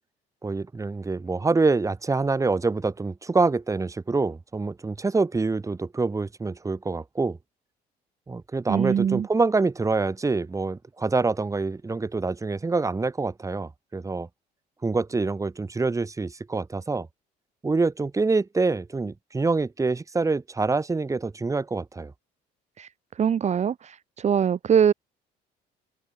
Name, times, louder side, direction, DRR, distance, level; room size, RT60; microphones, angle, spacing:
voice 1, 0.4-7.4 8.3-14.3 14.8-17.1 17.6-22.1, right 3 dB, 20° right, 2.6 m, -26 dB
voice 2, 8.7-9.3 22.8-22.9 23.2-24.9, right 8 dB, 40° right, 2.0 m, -22 dB
open air
cardioid pair, 110°, 17 cm